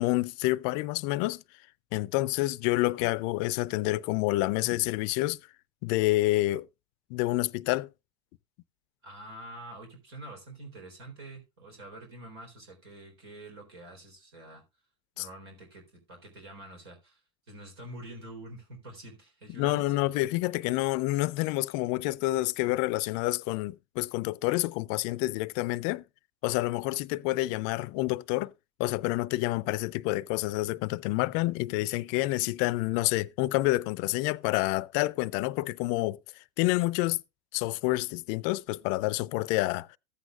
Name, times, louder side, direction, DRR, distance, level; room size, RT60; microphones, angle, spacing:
voice 1, 0.0-1.4 1.9-5.4 5.8-6.7 7.1-7.9 15.2-15.3 19.6-26.0 26.4-28.5 28.8-37.2 37.5-40.0, left 19 dB, 65° left, 0.4 m, -28 dB
voice 2, 9.0-14.6 15.2-17.2 17.5-20.1, right 1 dB, 80° right, 3.8 m, -46 dB
14.5 x 8.2 x 2.4 m
hypercardioid pair, 90°, 13 cm